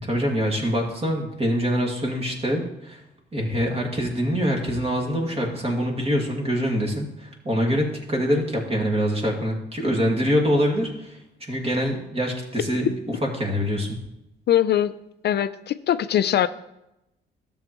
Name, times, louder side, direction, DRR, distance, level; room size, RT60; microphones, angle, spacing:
voice 1, 0.0-3.0 3.3-12.9 13.4-14.0, equal, 30° right, 0 dB, 2.2 m, -24 dB
voice 2, 14.5-14.9 15.2-16.5, left 11 dB, 55° left, 13 dB, 0.4 m, -21 dB
12.5 x 7.0 x 3.0 m, 0.87 s
cardioid pair, 90°, 20 cm